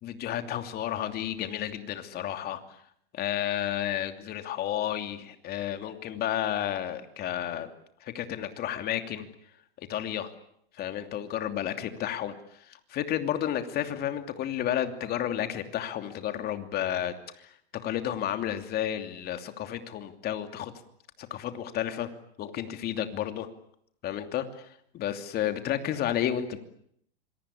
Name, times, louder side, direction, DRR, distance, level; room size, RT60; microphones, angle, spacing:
voice 1, 0.0-2.6 3.1-7.7 8.0-9.3 9.8-10.3 10.8-17.5 17.8-20.7 21.2-22.1 22.4-23.5 24.0-26.6, left 11 dB, 30° left, 8 dB, 2.8 m, -32 dB
27.0 x 23.0 x 8.6 m, 0.69 s
supercardioid pair, 140°, 31 cm